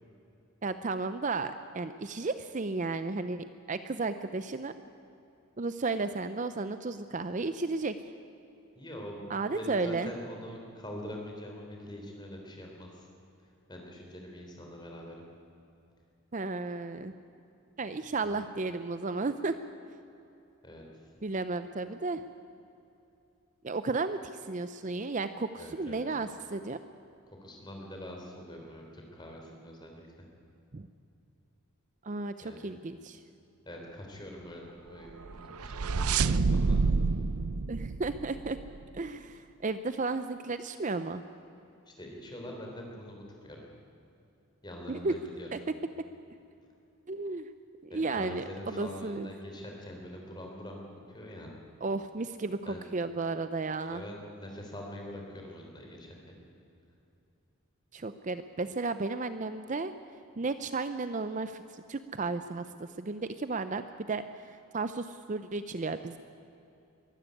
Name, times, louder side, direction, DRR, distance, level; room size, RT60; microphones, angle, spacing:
voice 1, 0.6-4.7 5.6-8.0 9.3-10.1 16.3-17.1 17.8-19.5 21.2-22.2 23.6-26.8 30.7-30.9 32.0-33.2 37.7-38.6 38.9-41.2 44.9-45.1 45.5-45.6 47.1-47.5 47.8-49.3 51.8-54.0 57.9-59.9 60.4-66.2, right 3 dB, 35° right, 11 dB, 0.5 m, -33 dB
voice 2, 8.8-13.1 13.7-15.2 18.2-18.4 20.6-21.1 25.6-26.0 27.4-30.3 32.4-32.8 33.7-36.8 41.9-43.6 44.6-45.5 47.9-51.5 52.6-52.8 53.9-56.2, equal, 20° left, 0 dB, 3.7 m, -44 dB
sound 1, 35.2-38.8, right 4 dB, 90° right, 0.6 m, -28 dB
22.5 x 12.5 x 9.7 m, 2.7 s
head